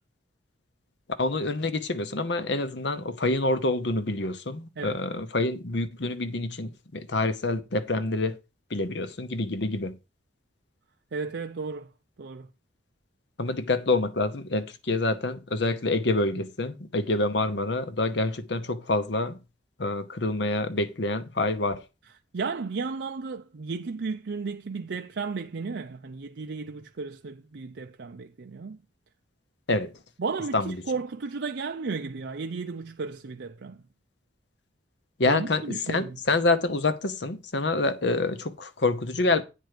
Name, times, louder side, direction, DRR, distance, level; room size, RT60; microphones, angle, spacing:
voice 1, 1.2-8.4 8.7-10.0 13.4-19.4 19.8-21.8 29.7-29.9 30.5-30.8 35.2-39.4, left 2 dB, 65° left, 0.9 m, -27 dB
voice 2, 11.1-11.9 12.2-12.5 22.3-28.8 30.2-33.8 35.2-36.2, right 4 dB, 65° right, 0.5 m, -34 dB
9.3 x 4.6 x 6.6 m
head